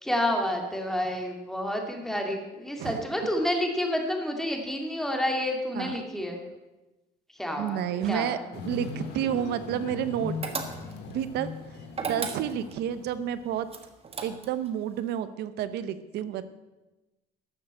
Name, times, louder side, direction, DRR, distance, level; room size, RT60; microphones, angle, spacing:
voice 1, 0.0-6.4 7.4-7.8 8.1-8.5, left 1 dB, ahead, 2 dB, 2.3 m, -29 dB
voice 2, 7.6-10.4 11.1-11.5 12.0-13.7 14.2-16.4, right 10 dB, 80° right, 13 dB, 0.8 m, -30 dB
sound 1, 8.5-13.3 13.7-13.8, left 4 dB, 85° left, 2.1 m, -39 dB
sound 2, 10.4-11.1 11.9-12.8 13.7-14.7, right 4 dB, 35° right, 1.5 m, -34 dB
13.0 x 6.7 x 7.6 m, 1.1 s
cardioid pair, 110°, 17 cm